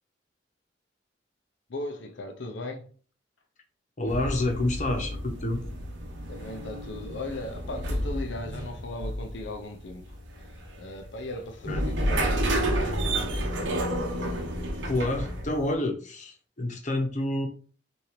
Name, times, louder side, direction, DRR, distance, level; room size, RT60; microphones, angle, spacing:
voice 1, 1.7-2.9 6.3-10.2 10.5-13.5, left 2 dB, 70° left, 0.7 m, -38 dB
voice 2, 4.0-5.7 11.7-11.8 14.8-17.5, left 1 dB, 40° left, 1.0 m, -28 dB
sound 1, 4.1-15.7, right 1 dB, 75° right, 1.1 m, -31 dB
5.8 x 2.7 x 3.2 m
head